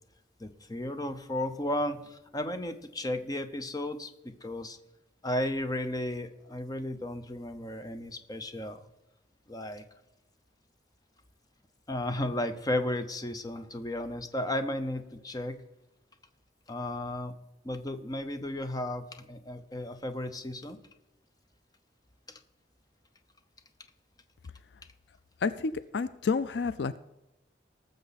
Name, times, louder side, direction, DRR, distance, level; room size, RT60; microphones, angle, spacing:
voice 1, 0.4-4.1 4.4-4.8 5.2-8.9 9.5-9.8 11.9-15.6 16.7-17.3 17.6-20.8, left 1 dB, 20° left, 9 dB, 0.7 m, -34 dB
voice 2, 25.4-27.0, left 4 dB, 65° left, 14 dB, 0.4 m, -30 dB
19.5 x 6.8 x 4.1 m, 0.96 s
head